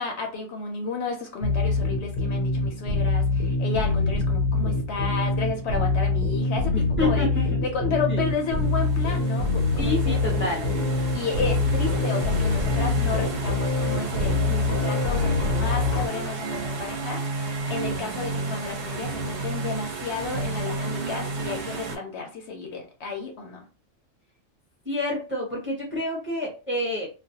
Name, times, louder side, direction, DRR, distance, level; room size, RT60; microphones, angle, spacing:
voice 1, 0.0-6.7 7.0-7.3 7.6-10.2 11.1-23.7, left 4 dB, 65° left, 2 dB, 0.8 m, -32 dB
sound 1, 1.4-16.1, left 3 dB, 85° left, 1.0 m, -25 dB
voice 2, 6.7-8.3 9.8-10.6 24.8-27.1, left 2 dB, 15° right, -2 dB, 0.5 m, -28 dB
sound 2, 8.5-22.0, right 3 dB, 55° right, 0.8 m, -32 dB
2.4 x 2.0 x 2.7 m, 0.33 s
omnidirectional pair, 1.3 m